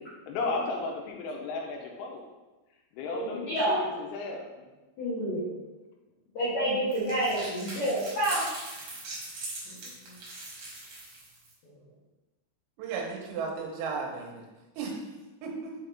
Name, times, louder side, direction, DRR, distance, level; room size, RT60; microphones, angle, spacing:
voice 1, 0.3-2.2 2.9-4.4, left 3 dB, 85° left, 0 dB, 3.1 m, -34 dB
voice 2, 3.0-3.8 5.0-5.5 6.3-8.4 10.0-10.1, right 1 dB, 65° left, -12 dB, 1.8 m, -28 dB
sound 1, 6.9-11.5, right 2 dB, 60° right, 2.1 m, -40 dB
voice 3, 12.8-14.4 14.8-15.1 15.4-15.8, right 5 dB, 90° right, 0 dB, 3.6 m, -35 dB
7.4 x 3.9 x 3.5 m, 1.1 s
omnidirectional pair, 5.9 m